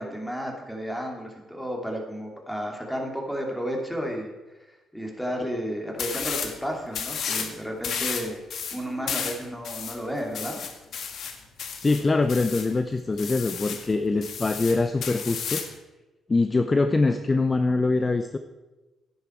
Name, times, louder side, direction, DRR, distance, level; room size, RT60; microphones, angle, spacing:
voice 1, 0.0-4.3 4.9-8.4 8.7-10.6, equal, 5° left, 0 dB, 2.7 m, -32 dB
sound 1, 6.0-6.6 6.9-7.5 7.8-12.7 13.2-13.9 14.2-15.7, left 6 dB, 65° left, 1.4 m, -32 dB
voice 2, 11.8-15.6 16.3-18.4, left 3 dB, 25° left, 9 dB, 0.6 m, -23 dB
11.0 x 10.0 x 4.5 m, 1.1 s
cardioid pair, 90°, 0 cm